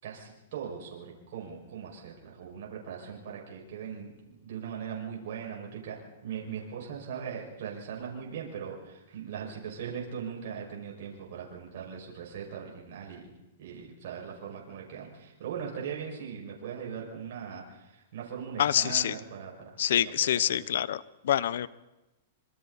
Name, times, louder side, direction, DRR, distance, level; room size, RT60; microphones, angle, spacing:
voice 1, 0.0-13.3 13.6-20.7, right 7 dB, 65° right, -1 dB, 6.0 m, -40 dB
voice 2, 18.6-19.1 19.8-21.0 21.3-21.7, left 10 dB, 75° left, 18 dB, 0.9 m, -26 dB
26.0 x 24.5 x 4.2 m, 1.0 s
hypercardioid pair, 140°, 0 cm